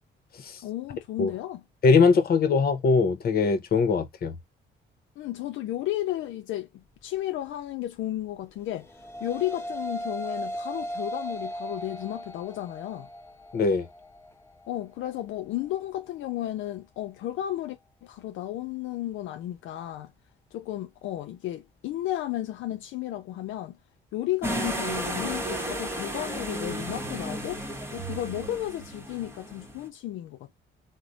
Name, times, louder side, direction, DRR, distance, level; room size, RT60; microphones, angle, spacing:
voice 1, 0.6-1.6 5.2-8.9 9.2-13.1 14.7-20.1 20.5-23.8 24.1-27.6 27.9-30.5, left 13 dB, 80° left, 0.4 m, -33 dB
voice 2, 1.8-4.3 13.5-13.9, left 4 dB, 50° left, 0.8 m, -21 dB
sound 1, 8.7-17.8, equal, 10° left, 1.3 m, -38 dB
sound 2, 24.4-29.9, right 1 dB, 10° right, 1.0 m, -33 dB
3.2 x 2.1 x 3.8 m
cardioid pair, 90°, 20 cm